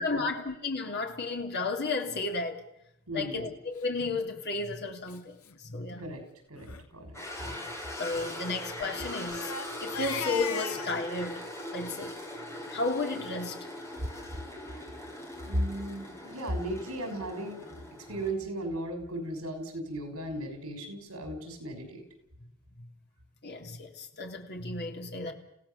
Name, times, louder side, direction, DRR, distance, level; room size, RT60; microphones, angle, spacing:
voice 1, 0.0-2.6 3.1-6.1 8.0-9.5 9.8-11.4 11.7-12.2 12.7-13.6 23.4-25.3, left 3 dB, 50° left, 3 dB, 3.1 m, -33 dB
voice 2, 3.1-3.5 6.0-6.2 6.5-7.6 15.4-17.8 18.1-22.0, right 1 dB, 75° right, 6 dB, 5.9 m, -36 dB
Crying sobbing, 4.2-4.4 5.1-5.2 5.4-5.6 5.9-6.1 6.6-6.8 8.0-11.0, left 5 dB, 80° left, 1.9 m, -39 dB
sound 1, 7.1-18.3, left 1 dB, 15° left, 4.6 m, -41 dB
28.5 x 16.5 x 7.2 m, 0.82 s
head